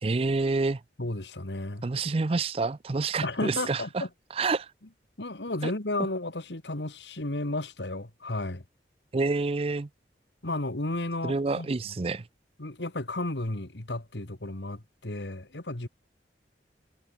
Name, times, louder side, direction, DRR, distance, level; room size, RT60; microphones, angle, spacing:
voice 1, 0.0-0.8 1.8-4.0 4.4-4.7 5.6-5.7 9.1-9.9 11.2-12.2, right 3 dB, 35° right, 0.5 m, -28 dB
voice 2, 1.0-1.9 3.2-4.1 5.2-8.6 10.4-11.9 12.6-15.9, left 2 dB, 80° left, 2.2 m, -33 dB
head